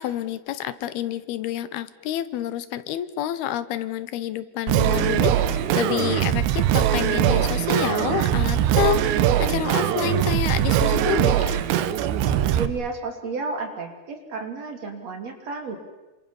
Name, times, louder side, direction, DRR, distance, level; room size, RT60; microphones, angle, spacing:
voice 1, 0.0-11.6, left 12 dB, 75° left, 14 dB, 2.8 m, -28 dB
Singing, 4.7-12.7, right 11 dB, 90° right, 3.3 m, -21 dB
voice 2, 12.5-15.8, right 4 dB, 40° right, 4 dB, 3.7 m, -32 dB
27.0 x 26.5 x 7.1 m, 1.1 s
omnidirectional pair, 4.8 m